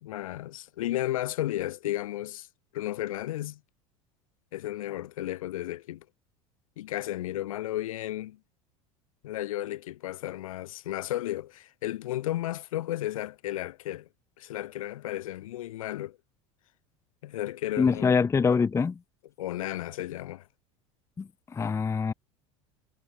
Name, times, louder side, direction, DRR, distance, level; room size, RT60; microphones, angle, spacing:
voice 1, 0.0-2.5 2.7-3.6 4.5-6.0 6.8-8.4 9.2-14.1 14.4-16.2 17.2-18.1 19.4-20.5, left 14 dB, 80° left, 2.8 m, -33 dB
voice 2, 17.8-19.0 21.2-22.1, left 5 dB, 15° left, 0.5 m, -25 dB
hypercardioid pair, 85°, 17 cm